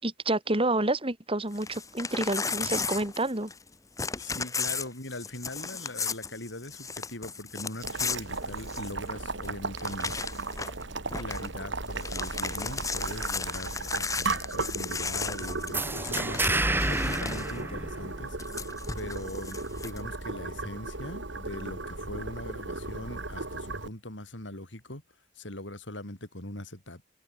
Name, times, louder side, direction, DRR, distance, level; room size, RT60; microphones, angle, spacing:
voice 1, 0.0-3.5, right 2 dB, 30° right, 3.8 m, -29 dB
Crumpling crinkling / Tearing, 1.5-3.7 4.0-9.1 9.4-9.5 9.8-10.8 11.1-11.5 11.8-17.6 18.4-20.0, left 4 dB, 20° left, 1.2 m, -35 dB
voice 2, 4.2-10.2 11.2-16.5 16.9-18.4 18.9-25.0 25.3-27.1, left 1 dB, 80° left, 7.3 m, -41 dB
Boiling, 7.8-23.9, right 3 dB, 80° right, 2.9 m, -36 dB
sound 1, 15.7-18.5, right 2 dB, 10° right, 3.4 m, -29 dB
head